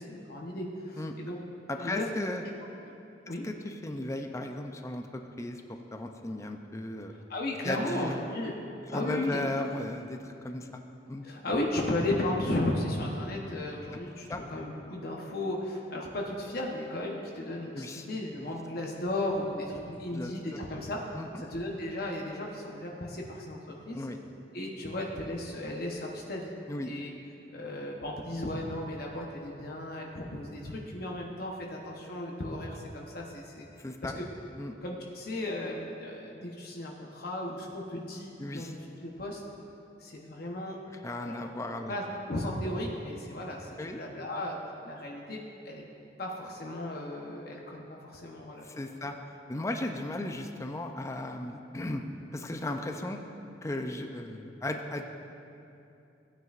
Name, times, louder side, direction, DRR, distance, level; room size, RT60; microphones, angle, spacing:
voice 1, 0.0-1.4 1.8-2.1 3.3-3.5 7.1-8.5 8.9-9.4 11.2-24.1 24.5-26.5 26.8-27.1 27.5-33.7 34.0-34.2 34.8-39.4 40.0-40.8 41.2-41.5 41.9-45.8 46.2-48.7, left 1 dB, 55° left, -1 dB, 0.9 m, -35 dB
voice 2, 1.7-2.4 3.4-5.6 5.9-7.1 7.6-8.2 8.9-10.8 11.1-11.2 14.3-14.4 17.8-18.1 18.4-18.5 20.1-20.3 21.1-21.3 23.9-24.2 26.7-26.9 33.8-34.1 34.6-34.7 38.4-38.7 41.0-41.9 43.8-44.0 48.6-49.1 49.5-52.0 52.3-53.2 53.6-55.0, left 1 dB, 15° left, 4 dB, 0.4 m, -35 dB
16.0 x 9.3 x 2.5 m, 2.8 s
head